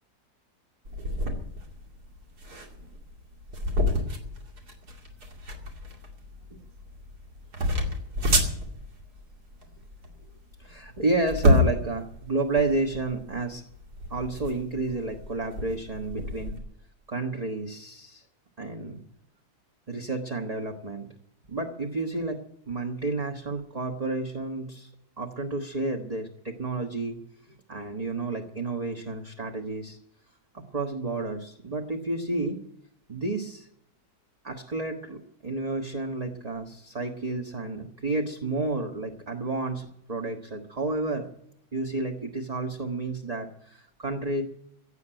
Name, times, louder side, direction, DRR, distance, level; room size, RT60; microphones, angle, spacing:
sound 1, 0.8-16.6, left 1 dB, 75° right, 3.0 m, -29 dB
voice 1, 10.6-13.6 14.1-16.6 17.1-18.2 18.6-19.0 19.9-21.1 21.5-24.9 25.2-27.2 27.7-30.0 30.5-32.6 33.1-33.7 34.4-41.3 41.7-44.4, right 2 dB, 25° right, 2 dB, 1.4 m, -31 dB
16.5 x 8.1 x 9.0 m, 0.72 s
omnidirectional pair, 1.7 m